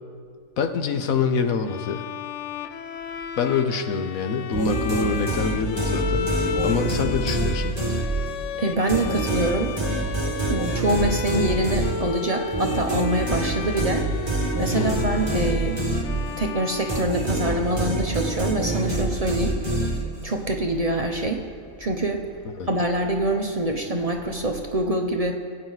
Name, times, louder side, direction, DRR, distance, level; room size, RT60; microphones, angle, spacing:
voice 1, 0.6-2.0 3.4-6.3 6.6-7.8 14.7-15.1 22.6-22.7, left 5 dB, 85° left, 7 dB, 1.3 m, -25 dB
Bowed string instrument, 1.7-17.7, left 8 dB, 70° left, 0.9 m, -34 dB
sound 1, 4.5-8.5 8.9-16.5 16.9-20.4, right 2 dB, 20° right, 2.1 m, -26 dB
voice 2, 8.6-9.7 10.5-14.1 14.6-15.8 16.4-19.6 20.2-21.4 21.8-22.3 22.7-25.3, right 1 dB, 35° right, 3 dB, 0.7 m, -25 dB
23.0 x 8.8 x 4.0 m, 2.1 s
omnidirectional pair, 1.4 m